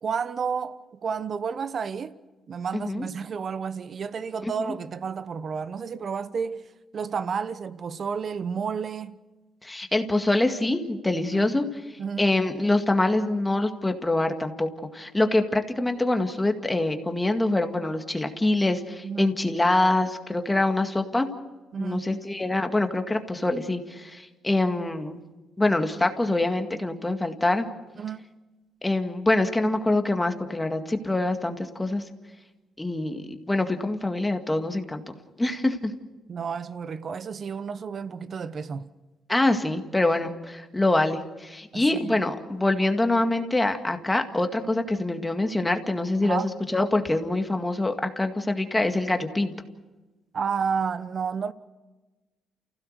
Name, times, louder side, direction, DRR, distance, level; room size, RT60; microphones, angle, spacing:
voice 1, 0.0-2.1 2.5-6.7 6.9-9.1 11.3-11.5 12.0-12.3 19.0-19.4 21.7-22.1 28.0-28.3 36.3-38.9 41.7-42.2 46.2-46.5 50.3-51.5, right 6 dB, 50° right, 1.0 m, -31 dB
voice 2, 2.7-3.1 4.4-4.5 9.6-11.7 12.2-21.3 21.8-25.2 25.6-27.7 28.8-32.0 32.8-35.9 39.3-46.4 46.7-49.5, left 2 dB, 15° left, 2.0 m, -25 dB
29.5 x 16.5 x 6.6 m
cardioid pair, 90°, 0 cm